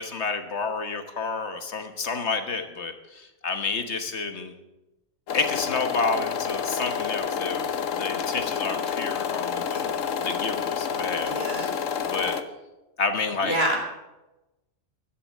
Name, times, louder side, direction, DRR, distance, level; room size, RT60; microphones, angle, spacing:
voice 1, 0.0-4.5 5.3-12.4 13.0-13.6, left 4 dB, 60° left, 7 dB, 1.5 m, -30 dB
sound 1, 5.3-12.4, left 7 dB, 85° left, 1.2 m, -29 dB
voice 2, 11.3-11.7 13.4-13.8, right 1 dB, 50° right, 2 dB, 3.4 m, -27 dB
12.5 x 10.5 x 7.5 m, 1.0 s
omnidirectional pair, 1.3 m